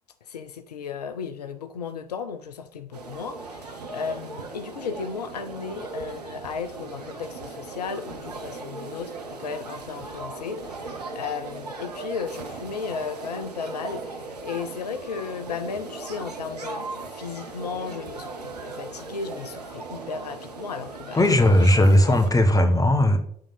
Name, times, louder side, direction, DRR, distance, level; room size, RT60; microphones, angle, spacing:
voice 1, 0.3-21.5 21.8-21.9, left 5 dB, 85° left, 0.4 m, -35 dB
sound 1, 2.9-22.3, right 3 dB, 90° right, 0.8 m, -38 dB
voice 2, 21.2-23.2, left 1 dB, 15° left, 1.1 m, -17 dB
11.0 x 3.6 x 3.9 m
figure-of-eight pair, 55°, 20 cm